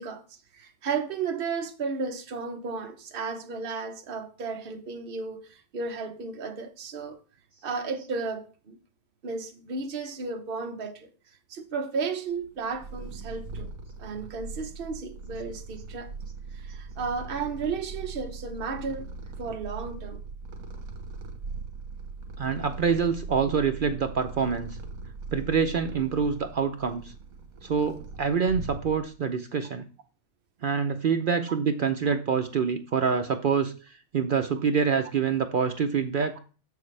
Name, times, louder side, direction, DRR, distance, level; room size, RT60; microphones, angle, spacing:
voice 1, 0.0-7.2 7.6-8.8 9.2-11.1 11.5-13.7 14.0-16.1 16.5-19.1 19.4-20.2, right 4 dB, 45° right, 1.0 m, -34 dB
Purr, 12.4-29.3, right 4 dB, 80° right, 1.6 m, -40 dB
voice 2, 22.4-24.8 25.3-27.1 27.6-29.9 30.6-36.4, right 6 dB, 60° right, 0.5 m, -26 dB
7.2 x 6.7 x 3.2 m
omnidirectional pair, 1.5 m